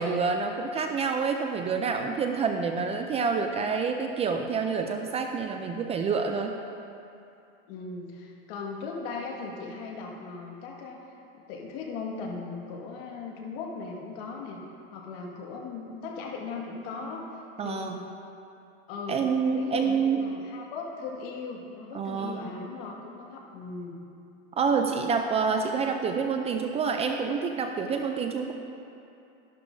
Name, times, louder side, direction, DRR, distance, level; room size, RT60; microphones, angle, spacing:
voice 1, 0.0-6.6 17.6-18.0 19.1-20.2 21.9-22.4 24.5-28.5, right 5 dB, 20° right, 5 dB, 0.4 m, -27 dB
voice 2, 7.7-11.0 11.3-14.6 14.9-17.3 17.6-18.0 18.9-19.3 19.5-23.9, left 4 dB, 65° left, -1 dB, 1.9 m, -38 dB
12.5 x 11.5 x 2.7 m, 2.7 s
supercardioid pair, 135°, 30 cm